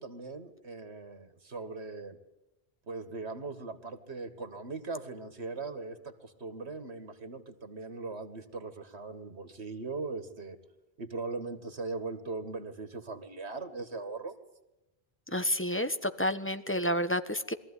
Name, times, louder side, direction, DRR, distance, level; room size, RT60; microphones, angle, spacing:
voice 1, 0.0-2.2 2.9-10.6 11.0-14.3, right 3 dB, 85° right, 9 dB, 2.1 m, -40 dB
voice 2, 15.3-17.5, equal, 10° left, 10 dB, 1.2 m, -30 dB
22.5 x 14.5 x 9.9 m, 1.0 s
omnidirectional pair, 1.1 m